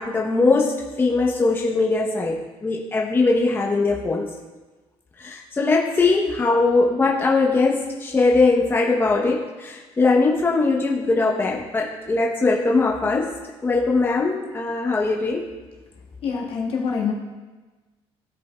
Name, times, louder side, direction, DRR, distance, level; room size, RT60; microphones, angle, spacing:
voice 1, 0.0-4.3 5.2-13.3 13.6-15.5, left 3 dB, 20° left, -2 dB, 0.8 m, -21 dB
voice 2, 16.2-17.1, left 6 dB, 65° left, -2 dB, 1.6 m, -25 dB
15.0 x 5.2 x 2.3 m, 1.3 s
cardioid pair, 125°, 11 cm